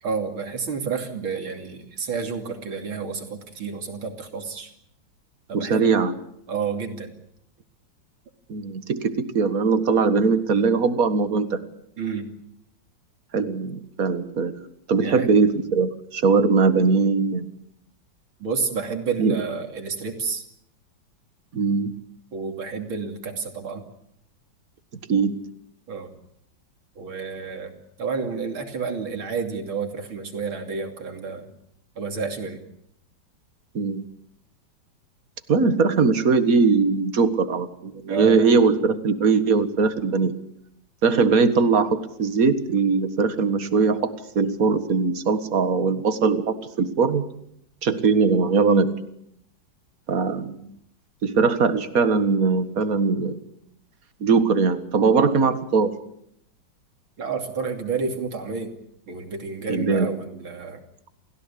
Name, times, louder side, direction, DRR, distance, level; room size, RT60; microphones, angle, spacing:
voice 1, 0.0-4.7 5.5-5.9 6.5-7.1 12.0-12.3 15.0-15.3 18.4-20.4 22.3-23.8 25.9-26.2 27.0-31.5 32.0-32.6 38.1-38.4 57.2-58.7 59.1-60.8, right 5 dB, 85° right, 5 dB, 3.6 m, -30 dB
voice 2, 5.5-6.2 8.5-11.6 13.3-14.6 14.9-17.5 19.2-19.4 21.5-21.9 25.1-25.4 33.7-34.0 35.5-40.3 41.0-47.2 47.8-48.9 50.1-50.6 51.2-53.4 54.2-55.9 59.7-60.1, right 4 dB, 45° right, 10 dB, 2.0 m, -20 dB
29.0 x 16.5 x 8.6 m, 0.74 s
omnidirectional pair, 2.2 m